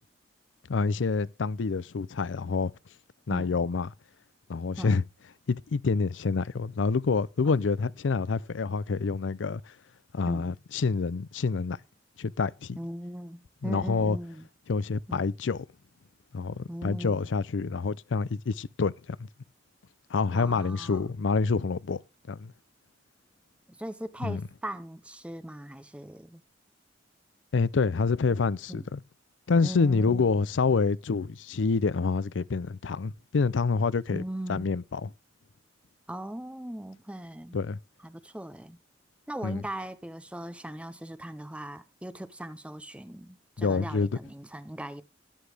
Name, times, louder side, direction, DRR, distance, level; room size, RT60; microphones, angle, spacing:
voice 1, 0.7-2.7 3.3-3.9 4.5-5.0 5.5-9.6 10.1-11.8 12.2-12.8 13.6-14.2 14.7-15.6 16.3-18.9 20.1-22.0 22.3-22.5 24.2-24.4 27.5-29.0 29.5-34.2 34.5-35.1 37.5-37.8 39.4-39.6 43.6-44.1, left 4 dB, 80° left, 0.5 m, -27 dB
voice 2, 10.3-10.6 12.8-14.5 15.1-15.3 16.7-17.3 20.3-21.0 23.8-26.4 28.7-28.9 29.6-30.3 34.1-34.7 36.1-37.6 38.0-38.8 39.3-45.0, right 1 dB, 5° right, 0.6 m, -39 dB
13.0 x 10.5 x 3.4 m
head